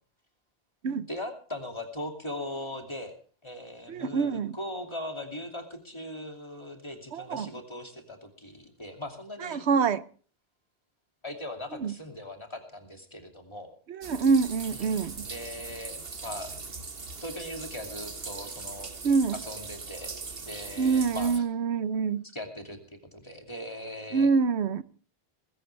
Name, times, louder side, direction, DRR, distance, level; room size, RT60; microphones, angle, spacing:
voice 1, 1.1-9.6 11.2-13.7 14.7-16.5 17.2-18.9 19.3-21.5 22.3-22.8 23.1-24.3, left 1 dB, 25° left, 2.7 m, -40 dB
voice 2, 3.9-4.6 7.1-7.5 9.4-10.0 11.8-11.9 13.9-15.3 19.0-19.3 20.8-22.2 24.1-24.8, right 5 dB, 85° right, 1.1 m, -26 dB
sound 1, 14.0-21.4, right 4 dB, 60° right, 1.7 m, -40 dB
20.0 x 16.5 x 3.3 m
omnidirectional pair, 1.1 m